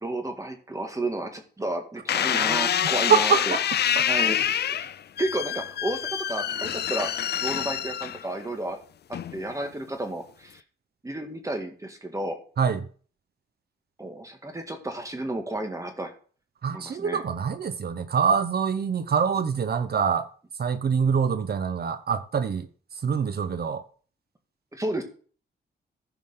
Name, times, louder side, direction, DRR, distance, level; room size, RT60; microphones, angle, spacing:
voice 1, 0.0-3.6 4.1-4.9 5.2-8.8 9.1-10.6 11.0-12.4 14.0-16.1 16.7-17.2 24.7-25.0, right 1 dB, 15° right, 1.9 m, -32 dB
sound 1, 2.1-8.5 9.1-9.6, left 10 dB, 60° left, 0.4 m, -26 dB
voice 2, 3.1-3.6 4.0-4.1 12.6-12.9 16.6-20.3 20.6-22.7 23.0-23.8, right 6 dB, 55° right, 0.8 m, -25 dB
15.0 x 5.1 x 3.8 m
wide cardioid pair, 120°, 19 cm